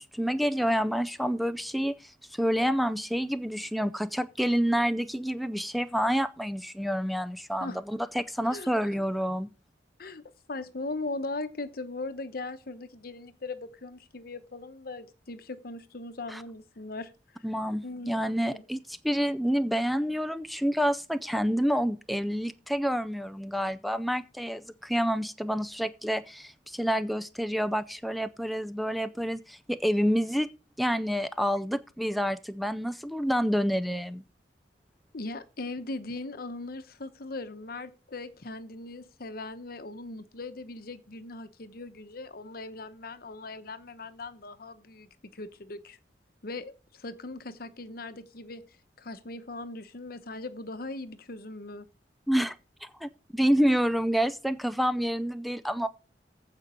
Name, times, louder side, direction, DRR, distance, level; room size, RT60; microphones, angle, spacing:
voice 1, 0.0-9.5 16.3-16.4 17.4-30.5 30.8-34.2 52.3-52.6 52.8-55.9, equal, ahead, 0.4 m, -28 dB
voice 2, 10.0-17.4 17.8-18.2 18.5-18.6 35.1-46.0 46.4-48.6 49.0-51.9, left 2 dB, 55° left, 0.9 m, -39 dB
15.0 x 5.2 x 4.4 m
head